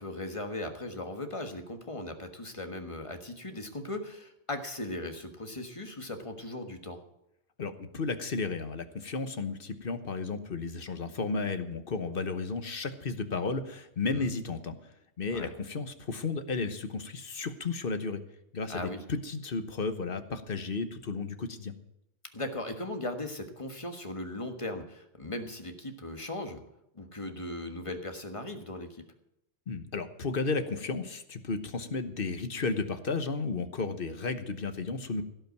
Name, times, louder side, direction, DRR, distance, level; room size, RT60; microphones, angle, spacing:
voice 1, 0.0-7.0 14.1-14.3 15.3-15.5 18.7-19.0 22.3-26.6 26.9-29.0, left 1 dB, 25° left, 6 dB, 1.5 m, -38 dB
voice 2, 7.6-18.2 18.5-21.7 29.7-35.2, left 4 dB, 50° left, 9 dB, 1.2 m, -33 dB
16.5 x 5.8 x 9.2 m, 0.83 s
omnidirectional pair, 1.2 m